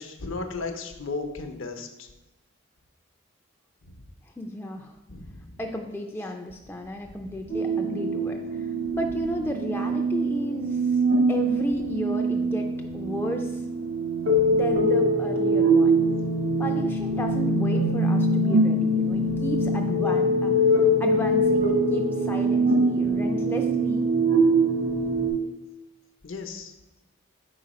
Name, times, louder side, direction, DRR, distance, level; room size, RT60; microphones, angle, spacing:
voice 1, 0.0-2.1 3.9-4.0 5.1-5.6 7.1-7.3 19.3-19.4 26.2-26.7, left 3 dB, 70° left, 6 dB, 0.7 m, -35 dB
voice 2, 4.4-5.0 5.6-8.7 8.9-10.8 11.3-12.7 12.9-13.6 14.5-16.0 16.6-24.1, equal, 10° left, 2 dB, 0.3 m, -33 dB
sound 1, 7.5-25.3, right 1 dB, 80° right, 1.3 m, -23 dB
4.8 x 3.9 x 5.2 m, 0.98 s
head